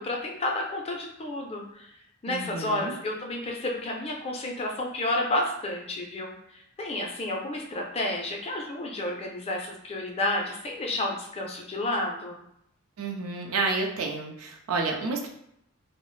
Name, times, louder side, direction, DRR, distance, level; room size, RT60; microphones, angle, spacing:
voice 1, 0.0-1.9 2.2-12.4, left 1 dB, 30° left, 0 dB, 0.4 m, -31 dB
voice 2, 2.3-2.9 13.0-15.3, right 3 dB, 80° right, 2 dB, 0.5 m, -30 dB
2.3 x 2.0 x 3.0 m, 0.74 s
head